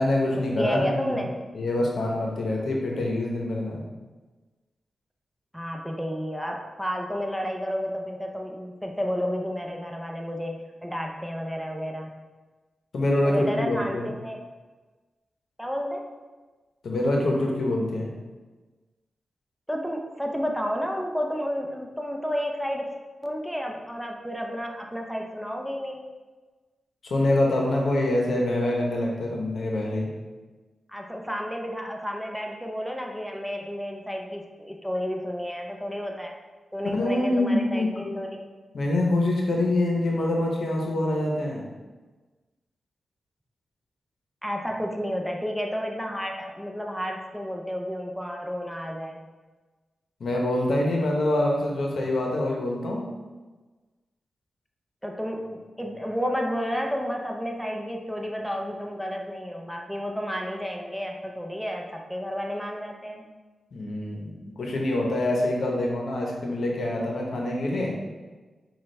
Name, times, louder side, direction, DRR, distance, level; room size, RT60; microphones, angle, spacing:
voice 1, 0.0-1.2 1.5-3.8 12.9-14.1 16.8-18.1 27.0-30.1 36.9-38.2 38.7-41.6 50.2-53.1 63.7-64.3 64.6-67.9, left 1 dB, 75° left, -1 dB, 0.8 m, -25 dB
voice 2, 0.6-1.3 5.5-12.1 13.2-14.4 15.6-16.1 19.7-22.9 23.2-26.0 30.9-36.3 36.7-38.4 44.4-49.2 55.0-63.3, equal, ahead, 1 dB, 0.6 m, -31 dB
5.9 x 2.3 x 3.3 m, 1.3 s
cardioid pair, 50°, 0 cm